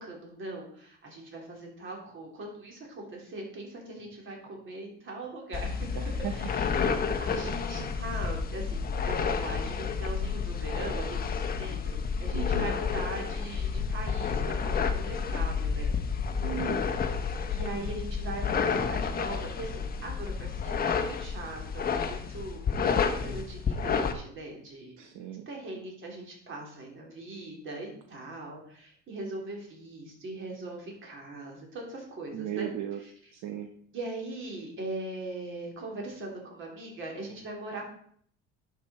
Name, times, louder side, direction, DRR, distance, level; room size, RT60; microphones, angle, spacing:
voice 1, 0.0-6.0 6.3-15.9 17.2-25.0 25.4-32.7 33.0-33.3 33.9-37.9, right 2 dB, 40° right, 0 dB, 3.4 m, -40 dB
sound 1, 5.5-24.1, left 6 dB, 30° left, 0.9 m, -30 dB
voice 2, 6.0-6.3 12.3-12.7 16.4-16.8 25.0-25.5 32.3-33.0 33.3-33.7, right 9 dB, 65° right, 6 dB, 0.9 m, -36 dB
11.0 x 6.1 x 4.3 m, 0.62 s
cardioid pair, 135°, 31 cm